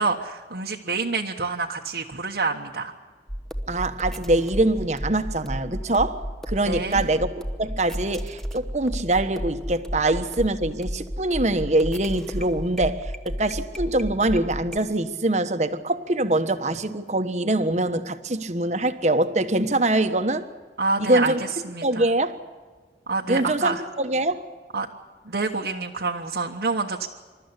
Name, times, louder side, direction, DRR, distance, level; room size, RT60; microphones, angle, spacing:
voice 1, 0.0-2.9 6.6-7.1 20.8-22.1 23.1-23.9 24.7-24.9 25.2-27.1, right 3 dB, 70° right, 1.3 m, -27 dB
sound 1, 3.3-14.8, equal, ahead, 1.1 m, -33 dB
voice 2, 3.7-7.3 7.6-20.5 21.0-21.4 21.8-22.4 23.3-24.4, right 2 dB, 40° right, 1.2 m, -24 dB
27.5 x 13.5 x 9.9 m
head